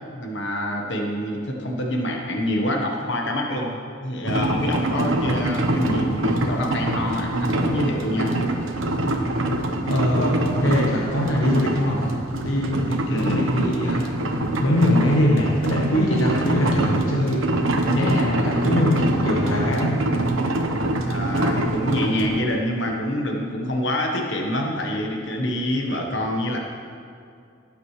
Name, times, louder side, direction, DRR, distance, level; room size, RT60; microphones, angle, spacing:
voice 1, 0.1-8.4 13.1-13.4 21.0-26.6, left 1 dB, 65° left, 1 dB, 1.3 m, -26 dB
sound 1, 4.3-22.4, right 1 dB, 85° right, 1.0 m, -24 dB
voice 2, 9.9-12.1 12.4-14.0 14.6-17.5 17.9-20.0, left 1 dB, 85° left, -2 dB, 1.1 m, -22 dB
18.0 x 8.6 x 3.3 m, 2.4 s
head